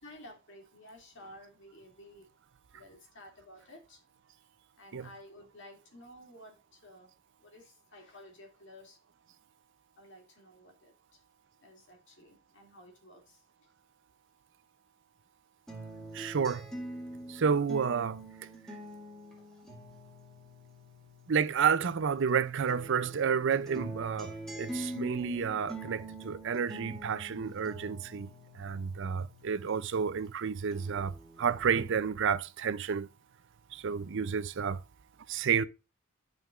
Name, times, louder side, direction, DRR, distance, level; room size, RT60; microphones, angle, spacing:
voice 1, 0.0-2.3 2.7-4.0 4.8-7.1 7.4-9.0 10.0-11.2 11.6-13.4, left 1 dB, 60° left, 2.6 m, -53 dB
sound 1, 15.7-22.3 22.7-30.3 30.7-31.7, right 1 dB, ahead, 2.0 m, -45 dB
voice 2, 16.1-16.7 17.3-18.2 21.3-28.3 28.6-33.1 33.7-34.8 35.3-35.6, right 6 dB, 60° right, 0.5 m, -30 dB
11.0 x 5.1 x 2.5 m
head